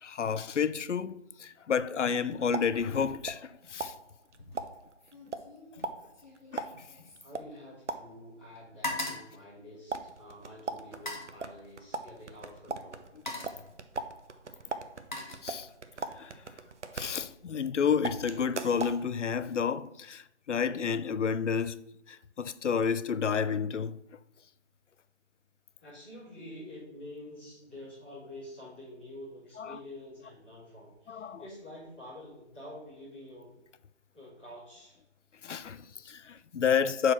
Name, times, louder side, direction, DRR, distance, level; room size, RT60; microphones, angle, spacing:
voice 1, 0.0-3.9 6.5-6.7 15.4-15.7 16.2-16.4 16.9-21.8 22.1-24.0 31.1-31.4 35.4-37.1, left 6 dB, 85° left, 0.5 m, -30 dB
sound 1, 2.2-3.6 3.8-8.4 9.9-17.7 18.0-19.0, right 4 dB, 75° right, 0.7 m, -40 dB
sound 2, 4.3-4.7 5.0-8.1 8.4-10.3 10.9-11.4 12.4-12.6 13.0-13.7 14.6-15.9 16.3-16.7, left 2 dB, 40° left, 1.3 m, -41 dB
voice 2, 7.2-13.0 25.8-33.5 34.1-35.0, left 1 dB, 10° left, 2.0 m, -48 dB
4.6 x 4.5 x 5.8 m
figure-of-eight pair, 170°, 35 cm